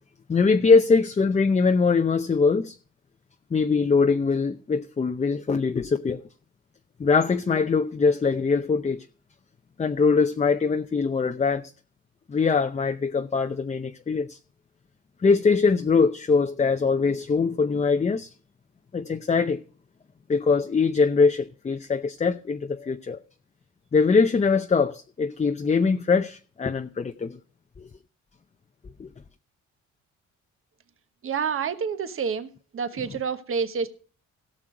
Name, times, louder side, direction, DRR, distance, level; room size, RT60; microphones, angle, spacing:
voice 1, 0.3-2.7 3.5-6.2 7.0-9.0 9.8-11.6 12.3-14.4 15.2-18.3 18.9-19.6 20.3-23.2 23.9-27.4 29.0-29.1, left 4 dB, 25° left, 0.7 m, -22 dB
voice 2, 31.2-33.9, right 6 dB, 45° right, 1.2 m, -28 dB
17.0 x 6.2 x 5.0 m
cardioid pair, 90°, 30 cm